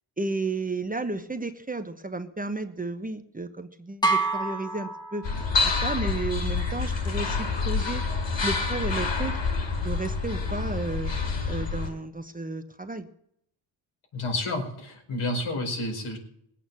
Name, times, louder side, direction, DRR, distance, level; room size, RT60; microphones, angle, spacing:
voice 1, 0.2-5.3 5.6-8.0 8.4-9.4 9.8-11.1 11.4-13.1, right 3 dB, 15° right, 8 dB, 1.0 m, -33 dB
sound 1, 4.0-5.8, right 3 dB, 10° left, 1.3 m, -28 dB
sound 2, 5.2-11.9, left 4 dB, 60° left, 6.2 m, -27 dB
voice 2, 14.1-16.2, left 2 dB, 80° left, 1 dB, 4.9 m, -30 dB
20.0 x 8.6 x 7.5 m, 0.73 s
cardioid pair, 100°, 49 cm